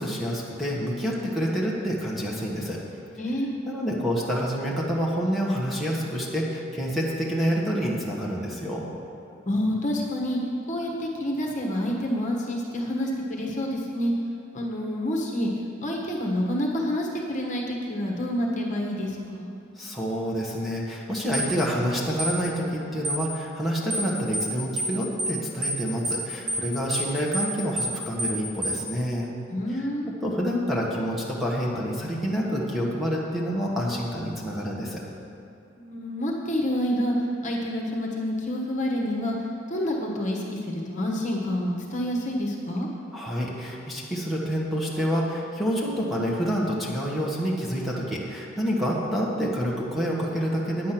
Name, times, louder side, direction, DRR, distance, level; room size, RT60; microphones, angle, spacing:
voice 1, 0.0-2.8 3.6-8.8 19.8-29.3 29.7-29.9 30.2-35.0 43.1-50.9, equal, ahead, -5 dB, 1.3 m, -28 dB
voice 2, 3.2-3.5 9.5-10.4 10.7-14.1 14.5-15.5 15.8-19.5 29.5-30.1 35.8-37.1 37.4-39.4 39.7-42.9, left 1 dB, 35° left, -1 dB, 1.3 m, -28 dB
sound 1, 21.3-21.5 22.2-22.4 23.0-23.2 23.9-24.1 24.3-24.5 24.8-24.9 25.2-25.4 25.6-25.8 26.0-26.2 26.5-26.6 26.9-27.1 27.3-27.5 27.8-27.9 28.2-28.4 28.6-28.8, right 1 dB, 55° right, 2.4 m, -28 dB
9.8 x 8.5 x 5.9 m, 2.7 s
head